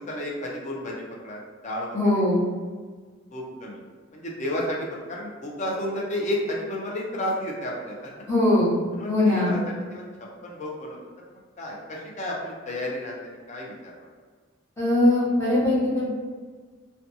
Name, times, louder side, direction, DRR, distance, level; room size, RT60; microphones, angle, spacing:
voice 1, 0.0-2.2 3.3-3.8 4.1-8.1 8.9-11.0 11.6-14.1, left 1 dB, 35° left, -2 dB, 0.5 m, -32 dB
voice 2, 1.9-2.4 8.3-8.7 9.1-9.5 14.8-16.1, left 1 dB, 15° left, -9 dB, 0.8 m, -21 dB
2.6 x 2.2 x 2.6 m, 1.5 s
head